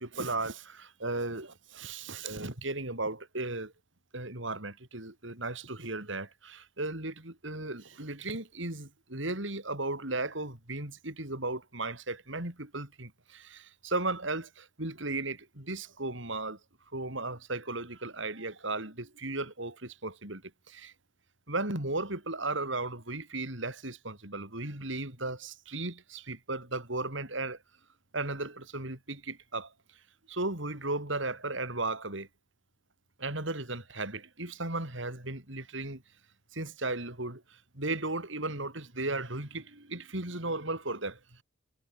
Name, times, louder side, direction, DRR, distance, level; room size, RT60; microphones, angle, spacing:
voice 1, 0.0-3.7 4.1-16.6 16.9-20.9 21.5-27.6 28.1-29.7 30.3-32.3 33.2-36.0 36.5-41.4, right 2 dB, 65° right, 4.7 m, -36 dB
head